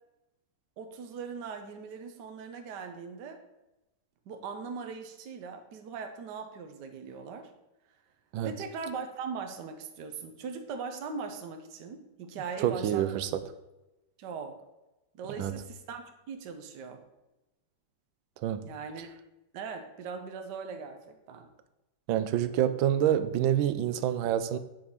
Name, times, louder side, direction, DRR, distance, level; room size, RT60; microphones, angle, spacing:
voice 1, 0.8-3.4 4.3-7.5 8.4-13.2 14.2-14.6 15.2-17.0 18.6-19.1 19.5-21.5, right 5 dB, 70° right, 5 dB, 1.3 m, -40 dB
voice 2, 12.6-13.4 15.4-15.5 18.4-18.6 22.1-24.6, right 11 dB, 85° right, 12 dB, 1.4 m, -27 dB
8.2 x 3.9 x 6.4 m, 0.99 s
omnidirectional pair, 2.1 m